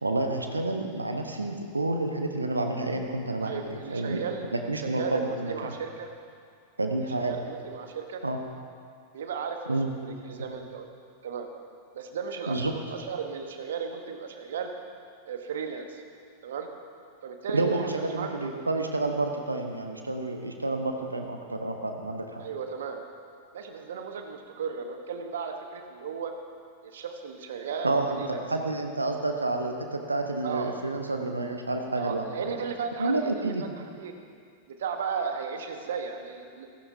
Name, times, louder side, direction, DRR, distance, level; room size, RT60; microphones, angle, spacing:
voice 1, 0.0-4.2 4.7-5.7 6.8-7.3 8.2-8.4 9.7-9.9 12.5-12.7 17.5-22.4 27.8-32.2 33.0-33.6, right 2 dB, 80° right, 4 dB, 1.0 m, -29 dB
voice 2, 3.4-4.4 4.7-6.1 7.0-8.2 9.1-10.9 11.2-11.5 11.9-14.7 15.2-16.0 16.4-16.7 17.2-18.5 22.4-23.0 23.5-26.3 26.8-28.4 30.4-30.8 31.9-34.1 34.7-36.7, right 6 dB, 60° right, 5 dB, 1.2 m, -35 dB
15.5 x 15.0 x 2.8 m, 2.2 s
figure-of-eight pair, 90°, 0 cm